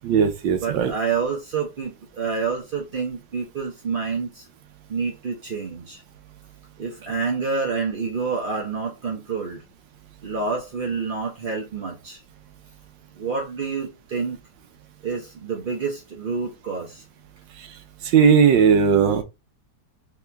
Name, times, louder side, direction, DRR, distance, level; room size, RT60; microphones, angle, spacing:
voice 1, 0.0-0.9 17.6-17.7 18.0-19.2, right 7 dB, 75° right, 1.4 m, -17 dB
voice 2, 0.6-4.4 4.9-6.0 6.8-9.6 10.2-12.2 13.2-14.4 15.0-17.0, right 5 dB, 60° right, 0.5 m, -28 dB
3.6 x 2.9 x 3.3 m
omnidirectional pair, 2.1 m